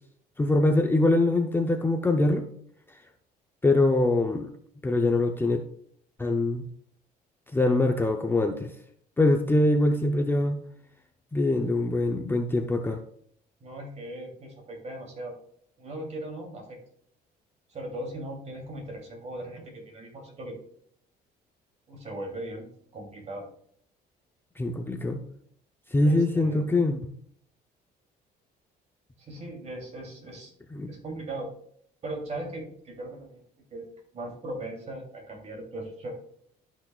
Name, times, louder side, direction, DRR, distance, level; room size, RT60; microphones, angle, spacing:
voice 1, 0.4-2.5 3.6-4.5 4.8-5.6 6.2-6.6 7.5-8.7 9.2-10.6 11.3-13.0 24.6-25.2 25.9-27.0 30.7-30.9, left 2 dB, 15° left, 5 dB, 0.6 m, -23 dB
voice 2, 13.6-15.4 15.8-16.8 17.7-20.6 21.9-23.5 26.0-26.7 29.2-30.5 30.9-31.5 32.0-33.4 33.7-33.8 34.1-36.1, right 1 dB, 40° right, 1 dB, 2.9 m, -38 dB
12.5 x 6.0 x 2.4 m, 0.64 s
cardioid pair, 110°, 17 cm